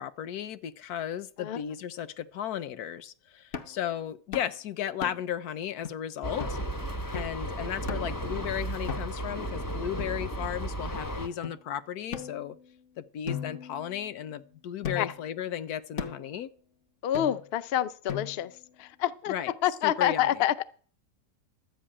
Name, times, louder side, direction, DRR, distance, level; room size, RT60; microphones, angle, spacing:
voice 1, 0.0-6.6 7.1-12.6 13.0-16.5 19.3-19.5 19.8-20.4, left 10 dB, 65° left, 1.2 m, -35 dB
sound 1, 3.5-3.8 4.3-4.6 5.0-5.4 5.8-5.9 6.4-6.6 7.1-7.4 7.9-8.2 8.9-9.3 10.0-10.7 11.4-11.6 12.1-12.8 13.3-14.3 14.8-15.3 16.0-16.3 17.1-17.6 18.1-18.6, left 7 dB, 50° left, 1.2 m, -38 dB
sound 2, 6.2-11.3, right 1 dB, 15° left, 0.7 m, -34 dB
voice 2, 17.0-18.5 18.8-19.3 19.6-20.6, left 11 dB, 85° left, 0.5 m, -27 dB
12.5 x 5.4 x 8.6 m
omnidirectional pair, 1.8 m